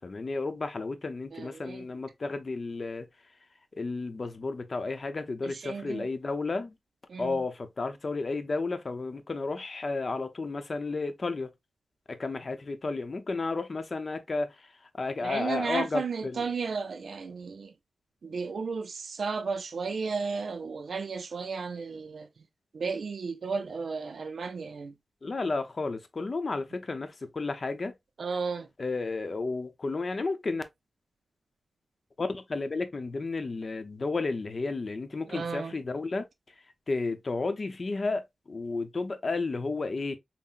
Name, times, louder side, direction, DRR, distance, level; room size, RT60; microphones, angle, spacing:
voice 1, 0.0-3.1 3.8-6.7 7.2-11.5 12.1-16.4 25.2-27.9 28.8-30.6 32.2-36.3 36.9-40.2, left 3 dB, 55° left, 0.6 m, -32 dB
voice 2, 1.3-1.8 5.4-6.1 7.1-7.4 15.2-17.7 18.2-22.3 22.7-24.9 28.2-28.7 35.3-35.7, right 5 dB, 80° right, 0.4 m, -34 dB
5.5 x 2.0 x 2.4 m
cardioid pair, 65°, 0 cm